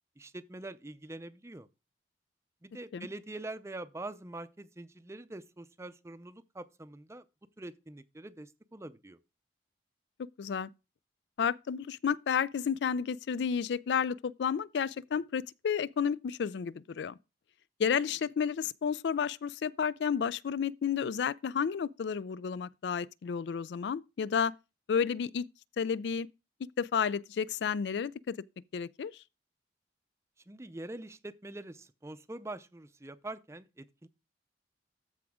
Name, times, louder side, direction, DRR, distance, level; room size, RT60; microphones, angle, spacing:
voice 1, 0.2-1.7 2.6-7.2 7.6-9.2 30.5-34.1, right 2 dB, 15° right, 0.5 m, -44 dB
voice 2, 10.4-10.7 11.4-17.2 17.8-24.5 24.9-25.4 25.8-26.3 26.8-28.4 28.7-29.2, left 7 dB, 70° left, 0.4 m, -31 dB
13.5 x 4.9 x 3.6 m
head